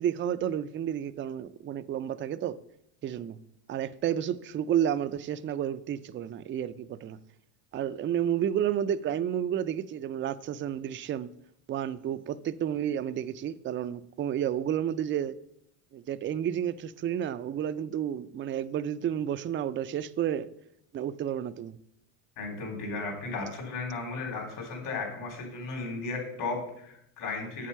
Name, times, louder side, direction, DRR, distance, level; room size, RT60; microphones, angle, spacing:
voice 1, 0.0-2.6 3.0-3.4 3.7-7.2 7.7-11.3 11.7-15.4 15.9-20.5 20.9-21.8, right 10 dB, 30° right, 0.4 m, -31 dB
voice 2, 22.4-27.7, left 3 dB, 65° left, 3.9 m, -35 dB
7.9 x 7.5 x 5.5 m
supercardioid pair, 110°, 42 cm